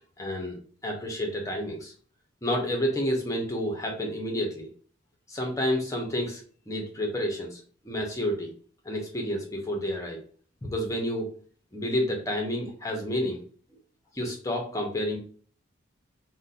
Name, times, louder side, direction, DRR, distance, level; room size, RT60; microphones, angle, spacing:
voice 1, 0.2-0.6 0.8-1.9 2.4-4.7 5.3-6.4 6.7-8.5 8.8-10.2 10.6-11.3 11.7-13.4 14.1-15.2, equal, 15° left, 1 dB, 0.6 m, -30 dB
2.5 x 2.1 x 3.9 m, 0.44 s
head